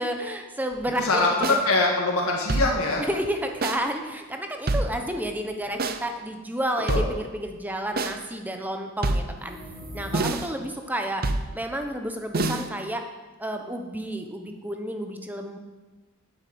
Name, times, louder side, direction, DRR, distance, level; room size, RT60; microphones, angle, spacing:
voice 1, 0.0-1.2 1.5-1.6 3.1-9.6 9.9-11.2 11.5-13.0 13.4-15.6, right 1 dB, 10° right, 4 dB, 1.0 m, -31 dB
voice 2, 1.0-3.1 6.9-7.0, left 2 dB, 80° left, -1 dB, 1.8 m, -23 dB
Rock drum beats various, 1.4-1.6 2.5-2.9 3.6-3.8 4.7-5.1 5.8-6.0 6.9-7.3 8.0-8.2 9.0-9.4 10.1-10.5 11.2-11.6 12.3-12.7, right 2 dB, 45° right, 0.7 m, -26 dB
sound 1, 9.3-10.8, equal, 70° right, 3.6 m, -41 dB
9.0 x 7.9 x 7.9 m, 1.2 s
head